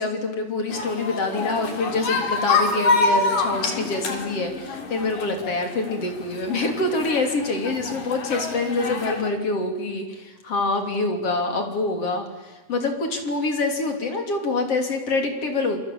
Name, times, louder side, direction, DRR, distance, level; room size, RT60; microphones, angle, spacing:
voice 1, 0.0-12.2 12.7-15.8, left 3 dB, 40° left, 4 dB, 3.8 m, -25 dB
sound 1, 0.7-9.3, left 3 dB, 55° left, 4.8 m, -27 dB
27.5 x 23.5 x 8.6 m, 1.1 s
omnidirectional pair, 4.7 m